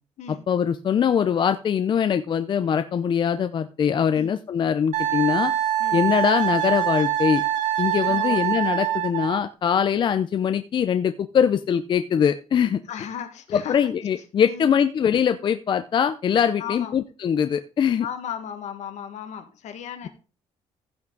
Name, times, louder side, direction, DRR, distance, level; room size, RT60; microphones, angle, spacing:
voice 1, 0.3-5.5 5.9-7.4 7.8-12.8 13.5-18.1, left 8 dB, 40° left, 10 dB, 0.5 m, -22 dB
Wind instrument woodwind instrument, 4.9-9.4, right 12 dB, 85° right, 1.9 m, -24 dB
voice 2, 8.0-8.4 12.9-13.8 14.5-14.7 16.6-17.0 18.0-20.1, left 8 dB, 70° left, 7 dB, 1.7 m, -35 dB
15.5 x 6.0 x 3.9 m, 0.34 s
cardioid pair, 155°, 12 cm